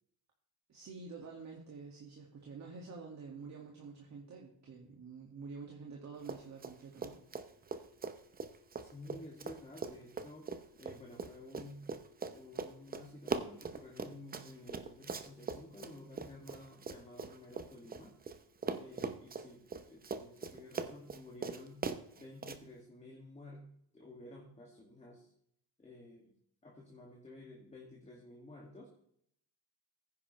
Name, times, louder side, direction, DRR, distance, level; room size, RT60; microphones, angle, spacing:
voice 1, 0.7-7.2, right 4 dB, 40° right, -1 dB, 2.0 m, -48 dB
Run, 6.2-6.7 7.0-18.4 18.6-22.6, right 5 dB, 20° right, 0.8 m, -41 dB
voice 2, 8.8-10.5 10.8-11.9 12.3-18.1 18.7-21.9 22.1-23.7 23.9-25.3 25.8-26.3 26.6-28.9, left 1 dB, 15° left, -2 dB, 2.1 m, -52 dB
15.0 x 9.9 x 3.2 m, 0.69 s
cardioid pair, 125°, 44 cm